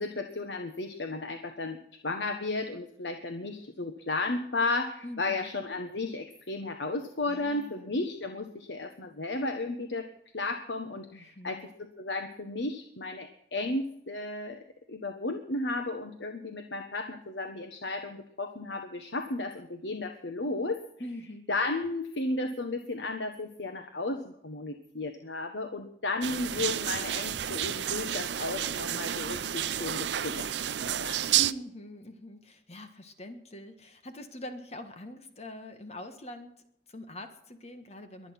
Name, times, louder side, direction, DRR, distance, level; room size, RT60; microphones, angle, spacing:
voice 1, 0.0-1.8 2.0-10.1 10.3-14.6 14.9-20.8 21.5-31.2, left 2 dB, 90° left, 6 dB, 1.4 m, -34 dB
voice 2, 5.0-5.5 7.3-7.9 11.1-11.6 21.0-21.5 31.3-36.5 36.9-38.3, equal, 35° left, 8 dB, 1.6 m, -43 dB
sound 1, 26.2-31.5, right 11 dB, 80° right, 0.6 m, -30 dB
23.0 x 9.0 x 6.0 m, 0.73 s
head